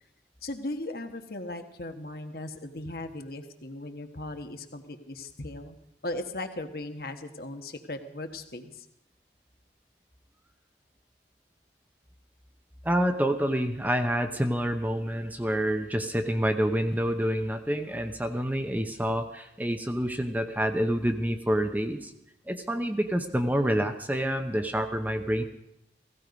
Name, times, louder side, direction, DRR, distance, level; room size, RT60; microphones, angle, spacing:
voice 1, 0.4-5.8 6.0-8.9, left 2 dB, 55° left, 6 dB, 1.4 m, -37 dB
voice 2, 12.8-22.1 22.5-25.4, equal, 10° right, 6 dB, 0.8 m, -27 dB
17.0 x 16.0 x 5.2 m, 0.80 s
head